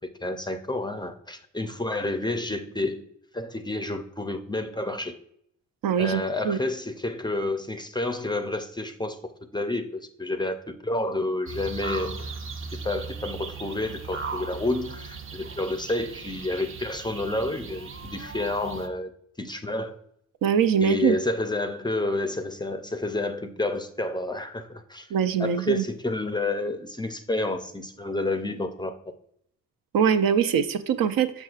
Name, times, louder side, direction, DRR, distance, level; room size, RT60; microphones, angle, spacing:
voice 1, 0.2-3.0 3.3-5.1 6.0-12.2 12.7-19.1 19.4-19.9 20.8-25.1 25.4-28.9, left 2 dB, 15° left, 8 dB, 0.4 m, -29 dB
voice 2, 5.8-6.6 20.4-21.2 25.1-25.8 29.9-31.4, right 7 dB, 80° right, 10 dB, 0.6 m, -23 dB
sound 1, 11.5-18.9, right 4 dB, 40° right, 0.6 m, -37 dB
6.5 x 6.1 x 2.4 m, 0.71 s
wide cardioid pair, 130°, 34 cm